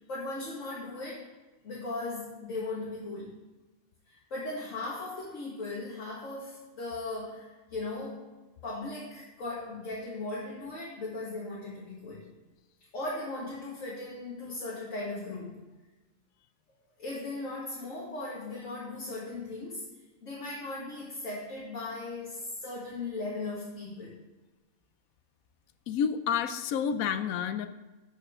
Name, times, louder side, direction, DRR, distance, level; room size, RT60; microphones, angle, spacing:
voice 1, 0.1-1.3 1.6-3.4 4.1-8.2 8.6-12.3 12.9-15.7 17.0-19.9 20.2-24.2, left 2 dB, 65° left, -7 dB, 2.1 m, -38 dB
voice 2, 25.9-27.7, left 7 dB, 90° left, 11 dB, 1.0 m, -29 dB
12.5 x 5.7 x 3.6 m, 1.1 s
omnidirectional pair, 1.4 m